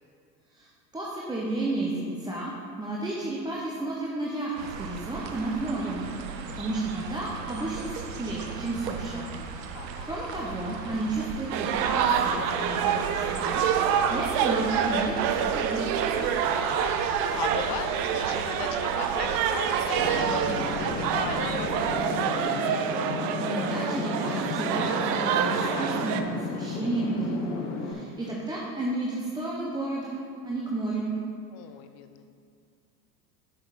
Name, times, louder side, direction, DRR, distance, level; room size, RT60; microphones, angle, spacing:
voice 1, 0.9-6.1 6.5-9.3 10.0-13.7 14.1-16.0 23.4-31.2, right 2 dB, 10° right, -4 dB, 0.9 m, -32 dB
sound 1, 4.6-21.9, right 6 dB, 80° right, 0.8 m, -38 dB
voice 2, 9.7-10.2 16.6-22.6 28.2-28.3 31.5-32.2, left 9 dB, 35° left, 8 dB, 0.4 m, -39 dB
sound 2, 11.5-26.2, right 8 dB, 45° right, 0.6 m, -27 dB
sound 3, 20.0-27.9, left 4 dB, 55° left, 1.1 m, -34 dB
7.3 x 6.4 x 4.1 m, 2.3 s
hypercardioid pair, 85°, 49 cm